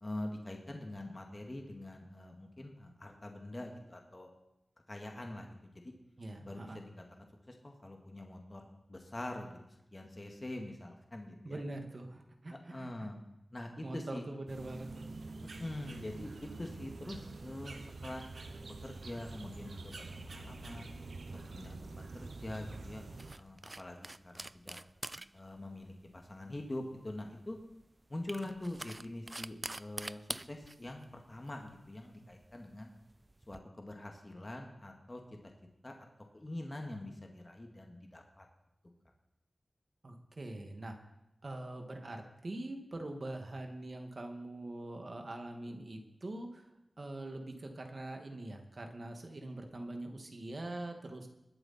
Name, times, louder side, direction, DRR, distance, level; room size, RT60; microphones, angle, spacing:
voice 1, 0.0-4.3 4.9-5.9 6.4-6.9 7.5-8.6 8.9-9.6 9.9-11.6 12.5-13.2 13.5-14.2 15.4-20.9 21.3-23.1 23.3-24.8 25.3-27.6 28.1-30.2 30.5-32.9 33.5-35.2 35.8-36.1 36.3-38.5, left 1 dB, 35° left, 2 dB, 2.0 m, -44 dB
voice 2, 6.2-6.8 11.4-12.9 13.8-15.1 40.0-41.0 41.4-46.7 47.0-51.3, right 2 dB, 55° right, 4 dB, 2.0 m, -43 dB
sound 1, 14.5-23.4, right 3 dB, 80° right, 1.0 m, -46 dB
sound 2, 21.0-33.6, right 2 dB, 35° right, 0.4 m, -48 dB
21.0 x 8.0 x 4.4 m, 0.90 s
cardioid pair, 40°, 0 cm